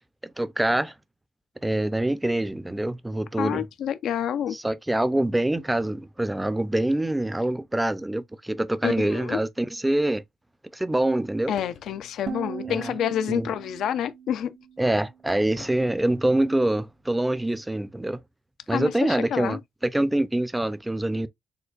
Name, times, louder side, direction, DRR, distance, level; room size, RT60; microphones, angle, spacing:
voice 1, 0.2-0.9 1.6-3.7 4.5-10.2 10.7-11.5 12.7-12.9 13.3-13.5 14.8-18.2 18.7-21.3, right 1 dB, 10° right, 0.5 m, -25 dB
voice 2, 3.4-4.6 8.8-9.4 11.5-14.6 18.7-19.6, left 9 dB, 75° left, 0.4 m, -28 dB
sound 1, 11.2-11.3 11.6-12.1 13.5-13.8 15.3-15.8 16.2-16.3 17.4-17.6, left 6 dB, 60° left, 0.9 m, -48 dB
sound 2, 12.3-15.3, right 6 dB, 60° right, 1.2 m, -39 dB
6.5 x 2.2 x 2.4 m
cardioid pair, 90°, 0 cm